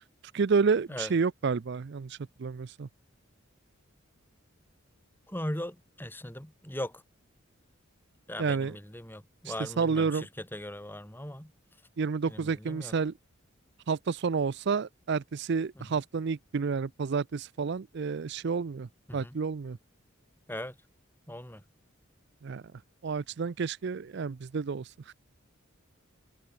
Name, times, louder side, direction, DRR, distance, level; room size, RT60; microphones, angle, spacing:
voice 1, 0.3-2.9 8.4-8.8 9.4-10.3 12.0-13.1 13.9-19.8 22.4-22.6 23.0-25.1, right 5 dB, 55° right, 0.4 m, -30 dB
voice 2, 5.3-7.0 8.3-11.5 12.3-12.9 19.1-19.4 20.5-20.8 21.3-21.6, left 1 dB, 10° left, 3.8 m, -39 dB
head